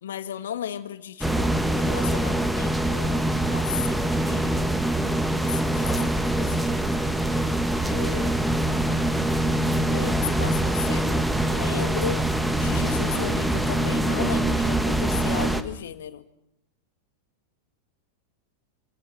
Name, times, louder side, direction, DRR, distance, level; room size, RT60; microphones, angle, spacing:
voice 1, 0.0-1.5 1.8-4.8 5.4-6.8 7.9-8.4 9.9-12.2 12.6-16.2, left 9 dB, 60° left, 10 dB, 2.0 m, -35 dB
sound 1, 1.2-15.6, right 1 dB, 5° right, 1.7 m, -24 dB
27.5 x 26.0 x 6.1 m, 0.80 s
figure-of-eight pair, 90°, 0 cm